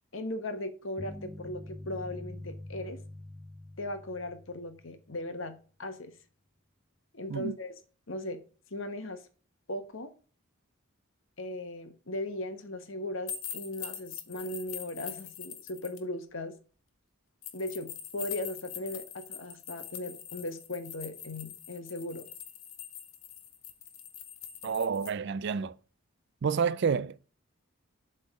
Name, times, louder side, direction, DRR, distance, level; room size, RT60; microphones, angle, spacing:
voice 1, 0.1-3.0 3.8-6.1 7.1-7.7 8.1-8.4 8.7-9.2 9.7-10.1 11.4-16.5 17.5-22.3, left 1 dB, 65° left, 1.2 m, -38 dB
sound 1, 1.0-5.2, left 1 dB, ahead, 0.6 m, -45 dB
sound 2, 13.3-16.0 17.4-25.1, left 9 dB, 85° left, 1.2 m, -43 dB
voice 2, 24.6-25.8 26.4-27.2, right 6 dB, 55° right, 0.4 m, -29 dB
7.8 x 3.6 x 5.9 m
head